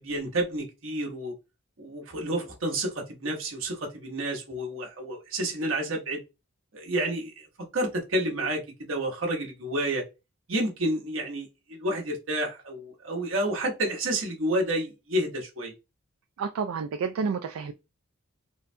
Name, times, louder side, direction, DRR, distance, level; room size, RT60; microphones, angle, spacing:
voice 1, 0.0-1.3 1.8-6.2 6.7-7.5 7.7-8.6 8.9-10.0 10.5-15.7, right 1 dB, 65° right, 1.1 m, -30 dB
voice 2, 16.4-17.7, right 5 dB, 80° right, 0.4 m, -30 dB
3.8 x 2.2 x 2.6 m
head